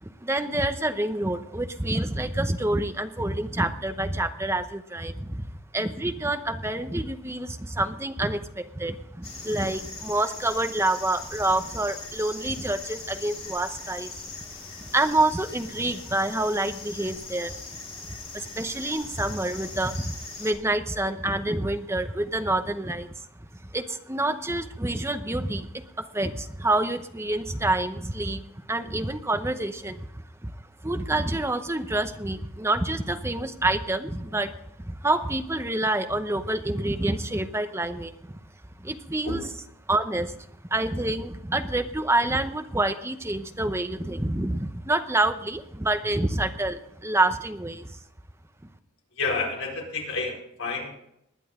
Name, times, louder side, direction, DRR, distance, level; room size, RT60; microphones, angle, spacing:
voice 1, 0.0-5.4 5.7-14.1 14.9-17.6 18.3-23.1 23.7-25.7 26.0-30.1 30.4-30.5 30.8-34.5 34.8-38.4 38.8-39.4 39.9-40.3 40.7-47.9, right 2 dB, 10° right, 8 dB, 0.8 m, -27 dB
sound 1, 9.2-20.5, left 3 dB, 25° left, 3.0 m, -40 dB
voice 2, 49.2-51.1, left 3 dB, 70° left, -2 dB, 4.6 m, -30 dB
20.0 x 10.0 x 3.7 m, 0.78 s
head